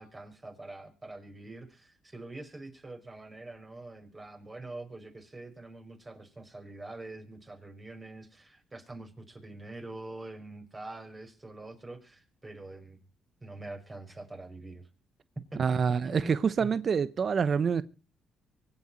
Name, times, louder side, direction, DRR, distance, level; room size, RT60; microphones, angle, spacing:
voice 1, 0.0-13.0 13.4-14.9 15.5-15.8 16.0-16.7, right 2 dB, 25° right, 5.4 m, -45 dB
voice 2, 15.6-17.8, right 6 dB, 50° right, 0.9 m, -26 dB
24.5 x 8.9 x 4.3 m
cardioid pair, 90°, 0 cm